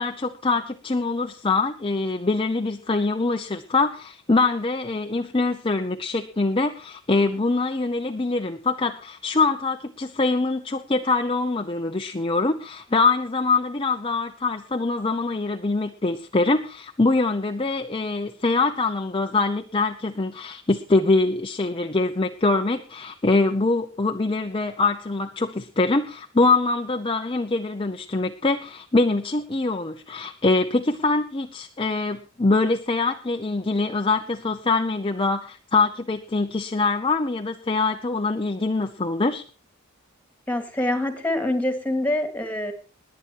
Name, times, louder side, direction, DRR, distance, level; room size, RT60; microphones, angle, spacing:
voice 1, 0.0-39.4, left 3 dB, 25° left, 5 dB, 0.8 m, -24 dB
voice 2, 40.5-42.7, left 1 dB, 10° left, 7 dB, 2.3 m, -25 dB
20.5 x 8.8 x 4.7 m, 0.37 s
head